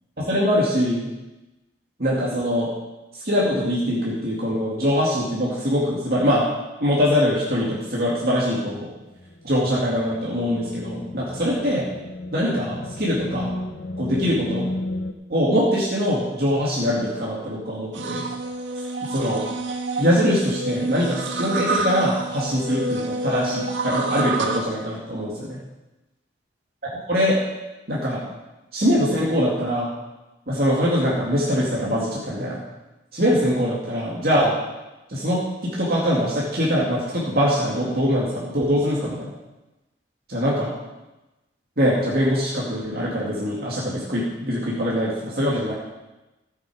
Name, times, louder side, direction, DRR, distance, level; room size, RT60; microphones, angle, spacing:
voice 1, 0.2-1.1 2.0-2.7 3.1-6.5 6.8-8.9 9.4-11.9 12.3-13.5 14.0-14.7 15.3-18.2 19.1-19.4 20.0-25.6 27.1-27.4 27.9-28.3 28.7-29.9 30.5-32.6 33.1-34.5 35.1-39.3 40.3-40.7 41.8-45.7, equal, 55° right, -6 dB, 2.4 m, -23 dB
sound 1, 8.8-15.1, left 1 dB, 65° left, 0.8 m, -33 dB
sound 2, 17.9-24.6, right 2 dB, 90° right, 1.4 m, -28 dB
14.5 x 8.3 x 5.0 m, 1.0 s
head